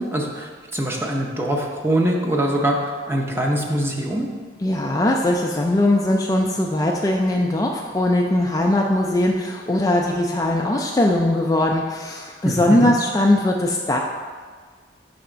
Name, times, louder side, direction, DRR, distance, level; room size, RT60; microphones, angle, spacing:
voice 1, 0.0-2.8 3.1-4.3 12.4-12.9, right 1 dB, 15° right, -1 dB, 0.6 m, -23 dB
voice 2, 4.6-14.0, left 1 dB, 20° left, 0 dB, 0.3 m, -20 dB
5.5 x 3.4 x 5.0 m, 1.5 s
head